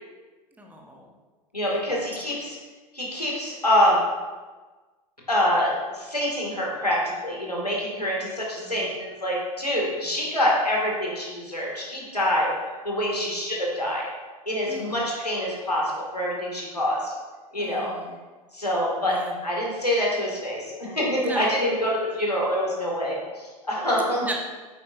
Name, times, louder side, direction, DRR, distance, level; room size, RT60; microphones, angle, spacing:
voice 1, 0.6-1.1 1.7-1.8 8.6-8.9 13.2-13.4 14.7-15.0 17.6-18.2 19.1-19.4 21.2-21.5 24.2-24.3, right 1 dB, 10° right, 1 dB, 1.1 m, -37 dB
voice 2, 1.5-2.6 2.9-4.0 5.3-12.5 12.8-14.1 14.5-17.1 17.5-17.9 18.5-19.2 19.4-24.3, equal, 85° left, -3 dB, 2.2 m, -25 dB
8.4 x 8.1 x 2.6 m, 1.3 s
figure-of-eight pair, 85°, 20 cm